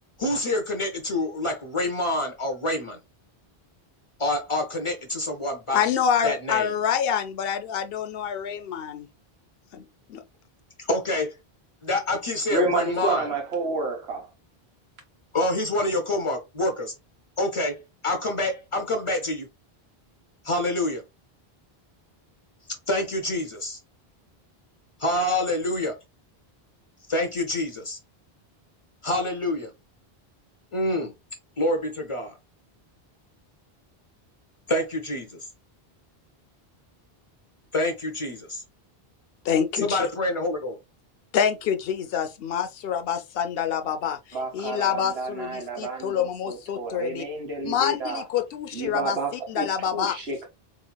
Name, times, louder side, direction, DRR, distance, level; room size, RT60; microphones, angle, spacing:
voice 1, 0.2-3.0 4.2-5.8 6.2-6.7 10.8-11.3 11.8-13.3 15.3-16.9 17.4-19.5 20.4-21.0 22.9-23.8 25.0-26.0 27.1-28.0 29.0-29.7 30.7-31.1 31.6-32.4 34.7-35.4 37.7-38.6 39.8-40.8, left 1 dB, 40° left, 0.6 m, -27 dB
voice 2, 5.7-9.1 9.7-10.2 39.4-40.1 41.3-44.2 44.5-47.2 47.6-49.2 49.5-50.2, left 8 dB, 70° left, 0.8 m, -26 dB
voice 3, 12.5-14.3 44.3-48.2 48.7-50.5, right 2 dB, 85° right, 1.4 m, -30 dB
3.8 x 3.0 x 2.2 m
omnidirectional pair, 1.0 m